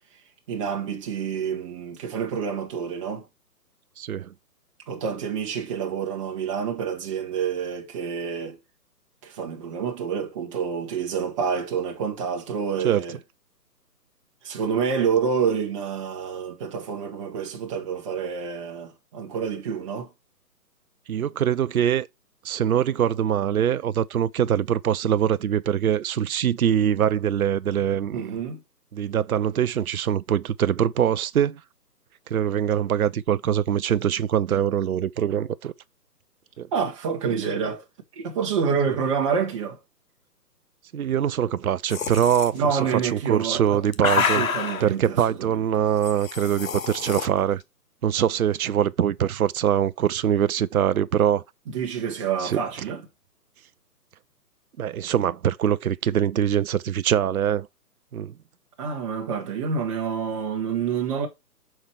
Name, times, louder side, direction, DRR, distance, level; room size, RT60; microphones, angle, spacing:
voice 1, 0.5-3.2 4.9-8.6 9.2-13.2 14.4-20.1 28.1-28.6 36.7-37.8 38.2-39.8 42.5-43.8 44.1-45.6 51.7-53.0 58.8-61.3, right 6 dB, 20° right, 1.1 m, -28 dB
voice 2, 4.0-4.3 12.8-13.0 21.1-22.1 22.4-28.2 28.9-31.6 32.3-35.7 36.6-36.7 40.9-44.5 44.8-47.6 48.0-51.4 52.4-52.6 54.8-57.7 58.1-58.3, right 9 dB, 65° right, 0.5 m, -23 dB
sound 1, 41.9-42.5 43.5-44.9 46.0-47.3, left 6 dB, 55° left, 0.9 m, -27 dB
6.5 x 4.5 x 4.4 m
figure-of-eight pair, 135°, 48 cm